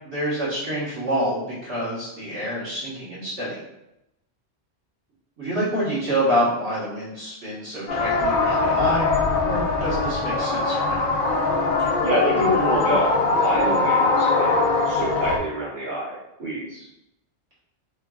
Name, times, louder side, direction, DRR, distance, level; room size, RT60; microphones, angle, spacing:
voice 1, 0.0-3.6 5.4-9.1 9.4-11.1, equal, 85° right, -9 dB, 2.0 m, -27 dB
sound 1, 7.9-15.4, left 3 dB, 60° left, 0.7 m, -22 dB
voice 2, 11.8-16.9, right 1 dB, 55° right, -8 dB, 0.9 m, -27 dB
4.0 x 3.7 x 2.4 m, 0.87 s
omnidirectional pair, 1.1 m